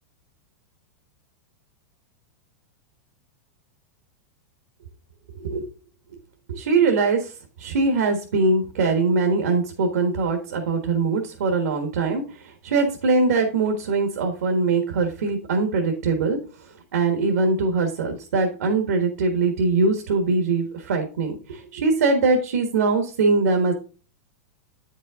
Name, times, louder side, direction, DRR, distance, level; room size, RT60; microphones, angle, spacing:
voice 1, 5.3-5.7 6.5-7.3 7.6-16.4 16.9-23.7, right 3 dB, 85° right, 4 dB, 1.5 m, -22 dB
8.8 x 5.5 x 3.6 m, 0.36 s
hypercardioid pair, 125°, 9 cm